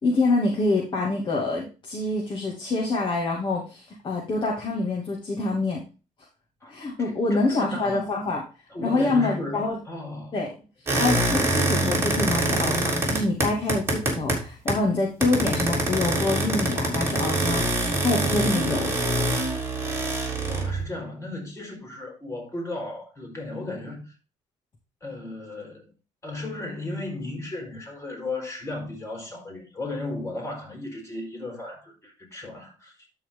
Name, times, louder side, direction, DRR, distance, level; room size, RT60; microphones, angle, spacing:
voice 1, 0.0-5.8 6.7-8.4 8.8-9.8 10.3-10.5 11.0-18.9, left 2 dB, 35° left, 2.5 m, -26 dB
voice 2, 7.0-8.0 8.7-10.4 20.5-24.1 25.0-25.9 26.2-32.9, left 2 dB, 20° left, 4.9 m, -35 dB
sound 1, 10.9-14.9 15.2-20.8, right 2 dB, 20° right, 3.1 m, -25 dB
12.0 x 4.9 x 3.8 m
cardioid pair, 115°, 13 cm